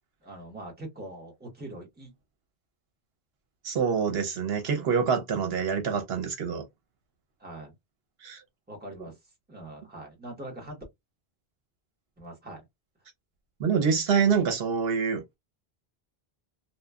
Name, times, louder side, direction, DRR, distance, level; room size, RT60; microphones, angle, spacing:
voice 1, 0.2-2.1 7.4-7.8 8.7-9.2 9.5-10.8 12.2-12.6, right 1 dB, 10° right, 1.0 m, -42 dB
voice 2, 3.6-6.6 8.2-8.4 13.6-15.4, right 6 dB, 75° right, 0.9 m, -26 dB
2.9 x 2.2 x 2.2 m
omnidirectional pair, 1.1 m